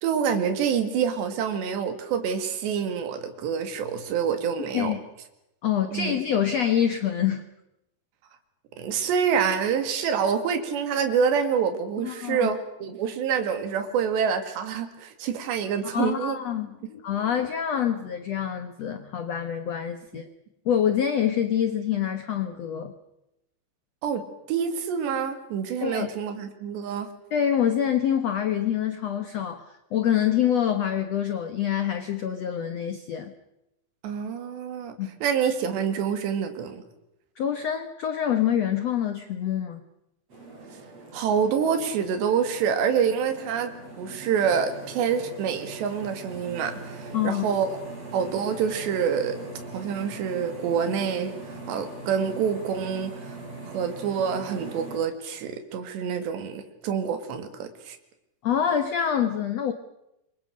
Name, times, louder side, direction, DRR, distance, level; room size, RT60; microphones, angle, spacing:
voice 1, 0.0-4.9 5.9-6.2 8.8-16.4 24.0-27.1 34.0-36.8 41.1-43.7 44.0-47.8 48.1-49.4 49.7-53.4 53.6-58.0, right 7 dB, 90° right, 8 dB, 4.4 m, -27 dB
voice 2, 5.6-7.4 12.0-12.5 15.9-20.2 20.6-22.9 25.8-26.1 27.3-33.3 35.0-35.1 37.4-39.8 47.1-47.4 58.4-59.7, left 9 dB, 75° left, 9 dB, 1.5 m, -26 dB
sound 1, 40.3-55.0, right 2 dB, 35° right, 7.8 m, -41 dB
27.5 x 23.5 x 6.5 m, 0.87 s
omnidirectional pair, 4.9 m